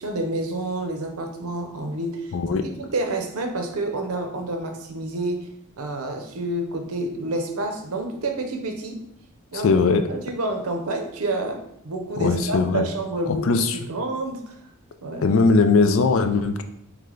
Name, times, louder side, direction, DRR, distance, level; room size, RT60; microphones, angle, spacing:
voice 1, 0.0-2.4 2.6-5.5 5.8-9.0 9.5-9.7 10.1-14.6 15.0-15.3, right 2 dB, 85° right, 4 dB, 0.7 m, -29 dB
voice 2, 2.3-2.7 9.6-10.1 12.2-12.9 13.3-13.8 15.2-16.6, left 4 dB, 65° left, 8 dB, 0.4 m, -19 dB
3.3 x 3.3 x 3.7 m, 0.75 s
head